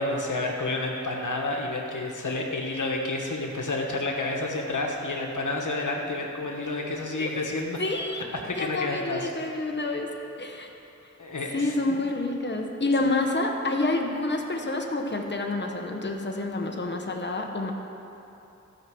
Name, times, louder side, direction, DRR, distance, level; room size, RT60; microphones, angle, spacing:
voice 1, 0.0-7.8 8.4-9.3 11.2-11.7, left 2 dB, 90° left, 0 dB, 1.3 m, -30 dB
voice 2, 7.8-8.2 8.6-10.1 10.4-10.7 11.5-17.7, left 2 dB, 35° left, 2 dB, 1.2 m, -28 dB
13.5 x 5.9 x 7.7 m, 2.9 s
wide cardioid pair, 55°, 30 cm